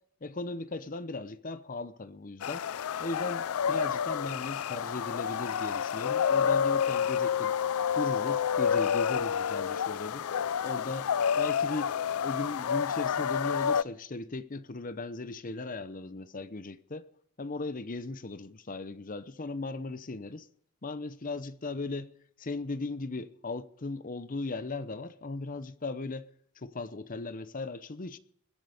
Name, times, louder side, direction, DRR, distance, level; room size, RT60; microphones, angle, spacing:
voice 1, 0.2-2.6 3.0-7.5 7.9-10.2 10.6-11.9 12.2-17.1 17.4-20.5 20.8-22.1 22.4-26.3 26.6-28.2, left 3 dB, 40° left, 0.8 m, -37 dB
sound 1, 2.4-13.8, left 7 dB, 80° left, 0.4 m, -29 dB
21.0 x 7.9 x 5.0 m
head